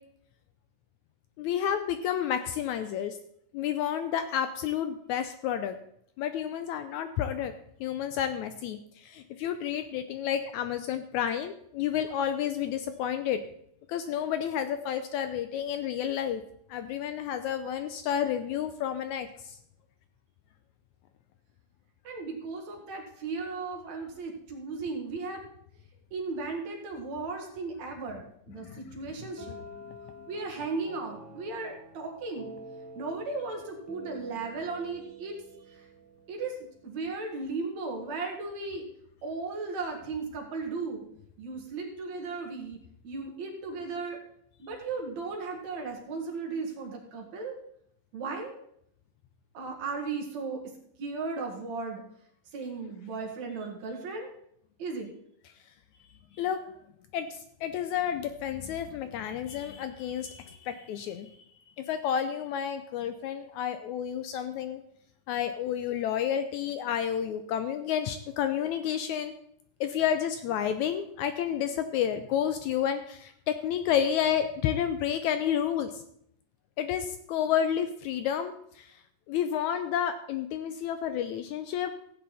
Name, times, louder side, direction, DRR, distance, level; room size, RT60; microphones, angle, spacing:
voice 1, 1.4-3.2 3.5-5.8 6.2-7.5 7.8-13.4 13.9-16.4 16.7-19.6 28.6-29.3 56.4-56.6 57.1-61.3 61.8-64.8 65.3-69.3 69.8-76.0 76.8-79.0 79.3-81.9, left 9 dB, 80° left, 9 dB, 1.8 m, -30 dB
voice 2, 22.0-25.4 26.1-29.6 30.3-32.5 33.0-35.4 36.3-38.9 39.2-41.0 41.4-42.8 43.0-44.2 44.6-47.6 48.1-48.5 49.5-50.6 51.0-52.0 52.5-54.3 54.8-55.1, right 4 dB, 60° right, 1 dB, 2.9 m, -36 dB
sound 1, 29.4-37.1, right 1 dB, 15° left, 0.6 m, -48 dB
15.0 x 8.6 x 4.1 m, 0.70 s
omnidirectional pair, 3.7 m